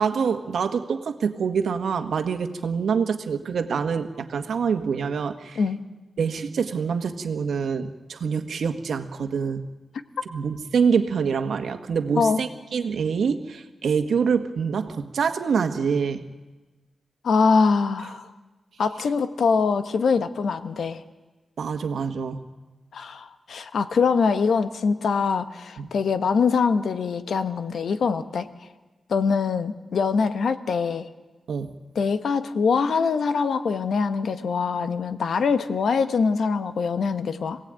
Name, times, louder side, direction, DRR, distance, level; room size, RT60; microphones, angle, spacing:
voice 1, 0.0-5.6 6.2-9.7 10.3-16.2 21.6-22.4 25.8-25.9 31.5-31.7, right 6 dB, 80° right, 7 dB, 1.6 m, -25 dB
voice 2, 17.2-18.3 18.8-21.0 22.9-28.5 29.1-31.1 31.9-37.6, left 5 dB, 70° left, 10 dB, 1.2 m, -23 dB
26.0 x 17.5 x 9.0 m, 1.2 s
wide cardioid pair, 150°, 0 cm